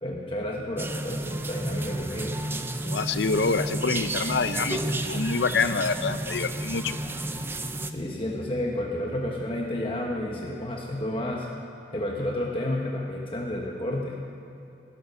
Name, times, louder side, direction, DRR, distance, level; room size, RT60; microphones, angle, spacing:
voice 1, 0.0-2.3 7.9-11.5 11.9-14.2, left 1 dB, 30° left, -1 dB, 1.1 m, -31 dB
sound 1, 0.8-7.9, right 1 dB, 15° right, 0.5 m, -31 dB
voice 2, 2.8-4.8 5.1-7.0, left 4 dB, 70° left, 12 dB, 0.6 m, -26 dB
16.5 x 11.0 x 6.6 m, 2.7 s
head